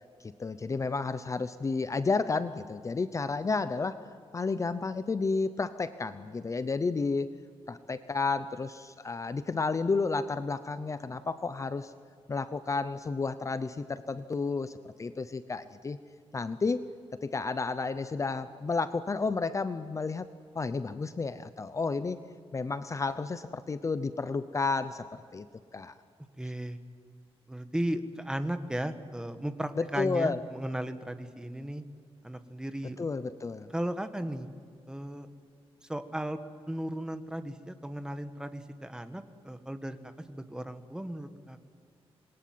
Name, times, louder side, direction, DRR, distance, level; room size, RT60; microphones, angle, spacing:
voice 1, 0.2-4.0 4.3-7.3 7.7-11.9 12.3-16.0 16.3-16.8 17.2-20.3 20.5-22.2 22.5-25.5 25.7-25.9 29.8-30.4 33.0-33.7, left 4 dB, 30° left, 12 dB, 0.7 m, -31 dB
voice 2, 26.4-26.8 27.5-31.8 32.2-33.0 33.7-34.5 34.9-35.3 35.9-36.4 36.7-40.0 40.3-41.7, right 1 dB, 5° right, 9 dB, 1.4 m, -35 dB
26.5 x 22.0 x 9.4 m, 2.2 s
wide cardioid pair, 170°, 10 cm